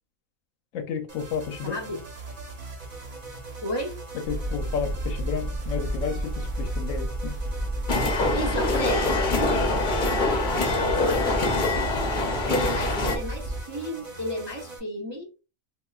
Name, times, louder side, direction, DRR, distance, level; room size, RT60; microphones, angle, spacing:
voice 1, 0.7-1.8 4.3-7.3, left 6 dB, 70° left, 1.0 m, -32 dB
sound 1, 1.1-14.8, right 2 dB, 80° right, 1.4 m, -42 dB
voice 2, 1.6-2.0 3.6-4.0 8.3-9.2 9.4-9.8 10.7-11.7 12.4-15.3, equal, 30° right, 0.4 m, -33 dB
sound 2, 4.3-13.6, right 1 dB, 60° right, 1.3 m, -31 dB
sound 3, 7.9-13.2, left 3 dB, 45° left, 0.7 m, -25 dB
3.7 x 2.4 x 2.3 m
omnidirectional pair, 1.4 m